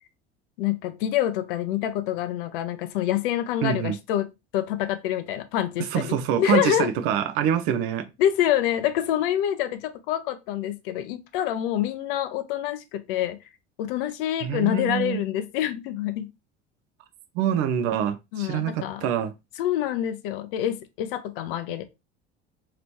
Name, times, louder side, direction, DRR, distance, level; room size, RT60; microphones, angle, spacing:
voice 1, 0.6-6.9 8.2-13.4 13.8-16.3 18.3-19.0 19.6-21.8, left 11 dB, 55° left, 0.5 m, -26 dB
voice 2, 3.6-4.0 5.9-8.1 14.4-15.2 17.3-19.3, right 9 dB, 45° right, 0.4 m, -25 dB
3.0 x 2.9 x 2.8 m
figure-of-eight pair, 70°, 34 cm